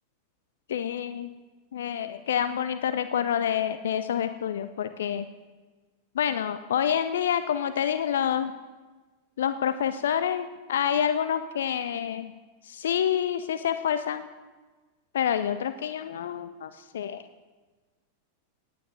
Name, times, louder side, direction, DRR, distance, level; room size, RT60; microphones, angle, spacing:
voice 1, 0.7-1.3 1.7-5.2 6.2-8.5 9.4-12.3 12.6-14.2 15.1-17.2, left 9 dB, 60° left, 11 dB, 0.5 m, -27 dB
18.5 x 9.3 x 3.3 m, 1.3 s
figure-of-eight pair, 90°, 0 cm